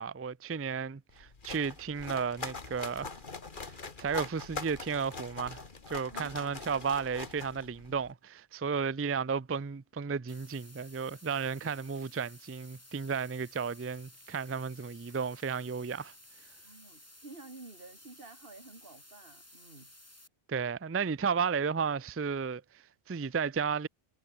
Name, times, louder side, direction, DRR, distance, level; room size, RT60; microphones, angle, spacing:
voice 1, 0.0-3.1 3.6-3.7 4.0-16.1 20.5-23.9, right 6 dB, 20° right, 0.3 m, -33 dB
sound 1, 1.1-8.1, left 4 dB, 50° left, 2.0 m, -43 dB
voice 2, 6.1-6.9 16.6-19.9, right 3 dB, 60° right, 3.1 m, -52 dB
sound 2, 10.3-20.3, left 1 dB, 15° left, 2.8 m, -56 dB
omnidirectional pair, 1.1 m